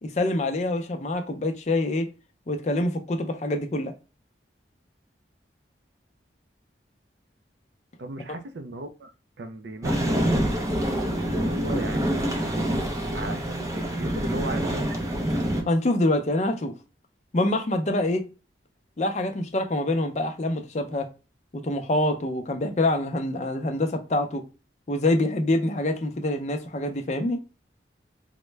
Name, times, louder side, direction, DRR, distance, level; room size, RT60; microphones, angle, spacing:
voice 1, 0.0-2.1 2.5-3.9 15.7-16.7 17.3-18.2 19.0-21.1 21.6-24.4 24.9-27.4, left 1 dB, 40° left, 0.5 m, -25 dB
voice 2, 8.0-10.2 11.1-12.6 13.1-15.0, right 2 dB, 75° right, 0.5 m, -37 dB
sound 1, 9.8-15.6, equal, 20° right, 0.5 m, -26 dB
3.6 x 2.1 x 3.2 m
head